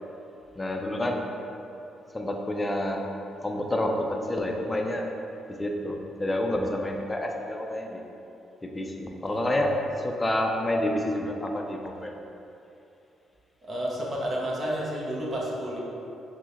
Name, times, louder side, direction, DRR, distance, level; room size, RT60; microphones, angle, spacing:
voice 1, 0.6-1.3 2.1-3.0 3.4-5.1 5.6-8.0 8.6-12.2, left 1 dB, 20° left, 2 dB, 0.4 m, -28 dB
voice 2, 9.2-9.7 13.6-15.8, equal, 40° right, -4 dB, 0.7 m, -31 dB
5.9 x 2.1 x 2.9 m, 2.8 s
cardioid pair, 90°, 0 cm